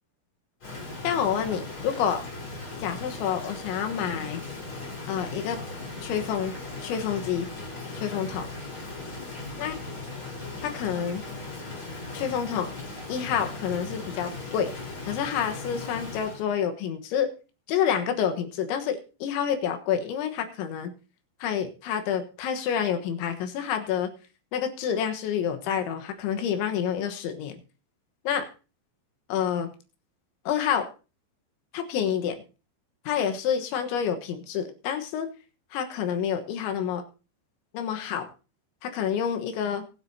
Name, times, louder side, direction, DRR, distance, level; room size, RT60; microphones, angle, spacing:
Rain, 0.6-16.4, left 2 dB, 30° left, 4.5 m, -38 dB
voice 1, 1.0-2.3 2.8-4.4 5.1-5.6 6.0-6.6 6.8-7.5 8.0-8.5 9.6-9.7 10.6-11.2 12.1-12.7 13.1-17.3 17.7-20.9 21.4-24.1 24.5-27.6 28.3-28.5 29.3-29.7 30.5-30.9 31.7-32.4 33.1-35.3 35.7-37.0 37.7-38.3 38.8-39.8, left 8 dB, 85° left, 6 dB, 3.6 m, -28 dB
24.0 x 8.1 x 2.8 m, 0.33 s
omnidirectional pair, 5.2 m